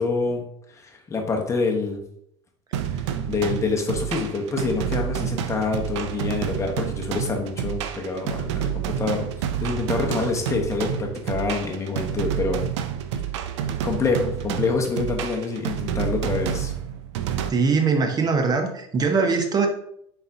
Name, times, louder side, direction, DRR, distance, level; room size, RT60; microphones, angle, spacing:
voice 1, 0.0-2.0 2.9-9.2 9.6-12.6 13.5-16.7, left 4 dB, 20° left, 2 dB, 0.9 m, -26 dB
sound 1, 2.7-17.5, right 9 dB, 85° right, 0.4 m, -29 dB
voice 2, 17.5-19.7, right 4 dB, 25° right, 4 dB, 0.8 m, -21 dB
4.2 x 3.9 x 2.7 m, 0.72 s
supercardioid pair, 105°, 14 cm